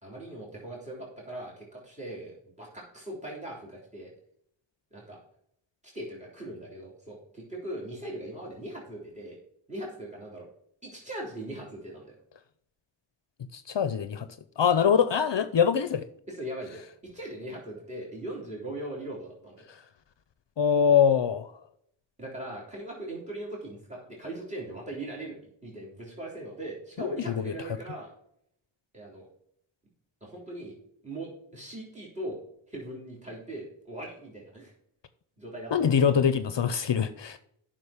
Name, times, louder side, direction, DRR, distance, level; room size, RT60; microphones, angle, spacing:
voice 1, 0.0-4.1 4.9-5.2 5.8-9.4 9.7-10.5 10.8-12.1 16.3-19.7 22.2-28.1 28.9-29.3 30.2-30.8 31.0-32.4 32.7-34.7 35.4-36.2, right 1 dB, 15° right, -2 dB, 3.5 m, -40 dB
voice 2, 13.5-14.3 14.6-16.0 19.7-19.8 20.6-21.5 27.0-27.5 35.7-37.4, left 7 dB, 60° left, 12 dB, 0.7 m, -24 dB
9.3 x 6.0 x 5.0 m, 0.71 s
wide cardioid pair, 85°, 50 cm